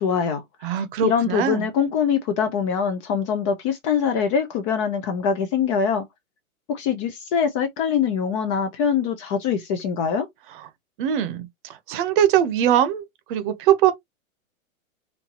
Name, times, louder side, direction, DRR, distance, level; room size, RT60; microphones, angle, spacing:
voice 1, 0.0-6.0 6.7-10.3, left 7 dB, 25° left, 0.5 m, -23 dB
voice 2, 0.6-1.7 11.0-13.0 13.3-13.9, right 10 dB, 40° right, 0.8 m, -21 dB
4.3 x 2.7 x 2.8 m
hypercardioid pair, 125°, 43 cm